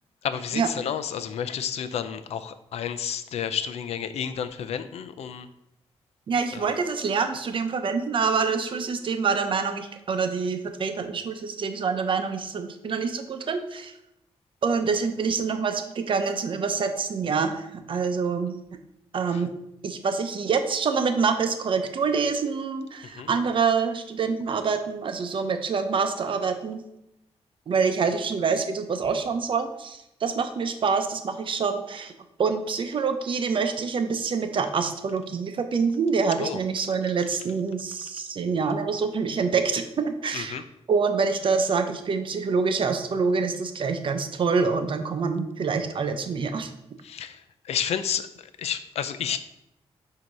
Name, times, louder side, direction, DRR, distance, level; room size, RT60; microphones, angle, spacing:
voice 1, 0.2-5.5 6.5-6.7 19.3-19.4 23.0-23.3 36.4-36.6 40.3-40.6 47.0-49.4, left 8 dB, 90° left, 11 dB, 0.4 m, -31 dB
voice 2, 6.3-13.9 14.6-18.6 19.1-19.5 19.8-26.8 27.7-32.1 32.4-40.6 40.9-46.7, right 5 dB, 55° right, 7 dB, 0.7 m, -26 dB
7.6 x 2.8 x 5.2 m, 0.84 s
wide cardioid pair, 125°, 11 cm